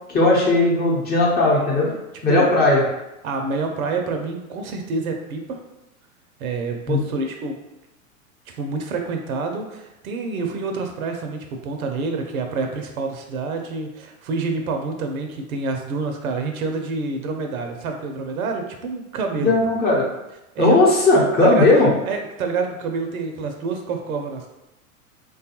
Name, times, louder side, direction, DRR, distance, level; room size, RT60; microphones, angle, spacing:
voice 1, 0.1-1.9 2.2-2.8 6.9-7.0 19.4-20.0 20.6-21.9, left 2 dB, 20° left, -4 dB, 0.9 m, -17 dB
voice 2, 3.2-5.6 6.4-7.6 8.5-19.5 20.6-20.8 21.4-24.5, right 4 dB, 75° right, 4 dB, 0.7 m, -27 dB
3.2 x 2.3 x 2.9 m, 0.93 s
hypercardioid pair, 105°, 43 cm